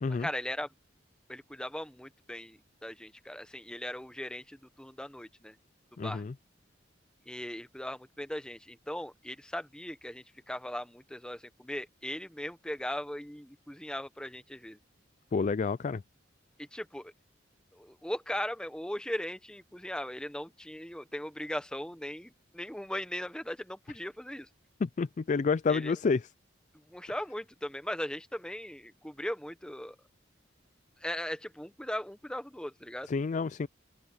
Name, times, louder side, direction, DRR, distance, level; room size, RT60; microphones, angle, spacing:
voice 1, 0.1-0.7 1.3-5.6 6.0-6.2 7.3-14.8 16.6-17.1 17.7-24.5 25.7-25.9 26.9-30.0 31.0-33.1, left 1 dB, 5° left, 1.1 m, -38 dB
voice 2, 6.0-6.3 15.3-16.0 24.8-26.3 33.1-33.7, left 4 dB, 40° left, 0.4 m, -29 dB
open air
head